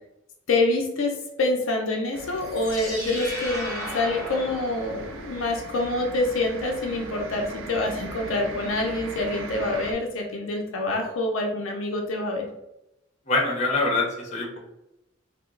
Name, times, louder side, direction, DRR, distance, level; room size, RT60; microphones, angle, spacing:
voice 1, 0.5-12.5, left 2 dB, 80° left, 1 dB, 0.5 m, -26 dB
sound 1, 2.1-9.9, right 3 dB, 65° right, 0.4 m, -39 dB
sound 2, 2.3-5.4, equal, ahead, 0.9 m, -36 dB
voice 2, 13.3-14.6, left 2 dB, 35° left, -1 dB, 0.7 m, -24 dB
2.8 x 2.1 x 3.7 m, 0.87 s
head